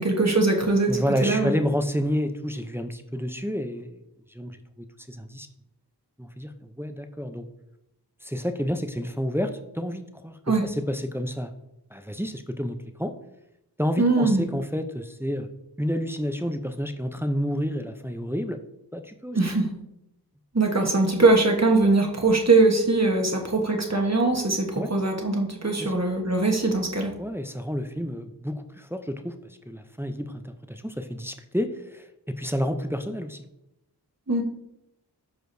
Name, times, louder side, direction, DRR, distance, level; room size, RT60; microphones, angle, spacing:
voice 1, 0.0-1.5 10.5-10.6 14.0-14.4 19.3-19.7 20.5-27.1 34.3-34.4, right 3 dB, 40° right, 2 dB, 1.2 m, -21 dB
voice 2, 0.9-4.0 4.3-5.5 6.2-7.5 8.2-11.5 11.9-13.1 13.8-15.5 15.8-18.6 18.9-19.4 24.7-24.9 25.8-25.9 27.2-29.3 29.7-33.4, equal, 5° right, 7 dB, 0.5 m, -30 dB
12.5 x 4.9 x 2.6 m, 0.86 s
wide cardioid pair, 40°, 41 cm